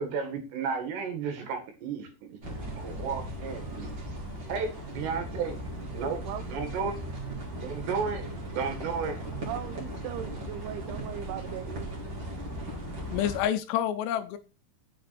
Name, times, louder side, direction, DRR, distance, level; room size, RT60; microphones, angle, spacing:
voice 1, 0.0-3.9 4.5-5.6 5.9-6.2 6.5-7.0 7.6-9.2, right 5 dB, 70° right, 3.9 m, -33 dB
sound 1, 2.4-13.4, right 1 dB, 30° right, 2.6 m, -37 dB
voice 2, 9.5-11.9, right 12 dB, 85° right, 2.3 m, -38 dB
voice 3, 13.1-14.4, left 10 dB, 80° left, 2.7 m, -28 dB
9.6 x 7.7 x 4.2 m
omnidirectional pair, 5.2 m